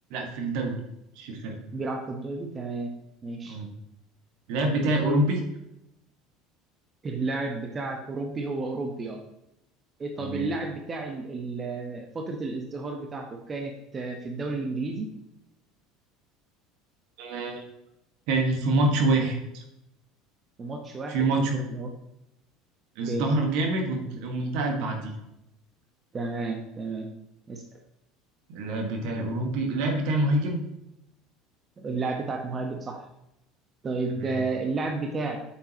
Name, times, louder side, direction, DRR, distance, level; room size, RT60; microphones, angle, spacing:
voice 1, 0.1-0.8 1.2-1.6 3.4-3.7 4.5-5.4 10.2-10.5 17.2-17.6 18.3-19.6 21.1-21.6 23.0-25.1 28.5-30.6 34.1-34.4, right 2 dB, 65° right, 2 dB, 1.8 m, -26 dB
voice 2, 1.7-2.9 3.2-3.6 7.0-9.2 10.0-15.1 20.6-21.1 21.5-21.9 23.1-23.3 26.1-27.1 27.5-27.6 31.8-33.0 33.8-35.4, right 3 dB, 30° right, 3 dB, 1.2 m, -32 dB
9.0 x 7.2 x 3.1 m, 0.85 s
hypercardioid pair, 75°, 0 cm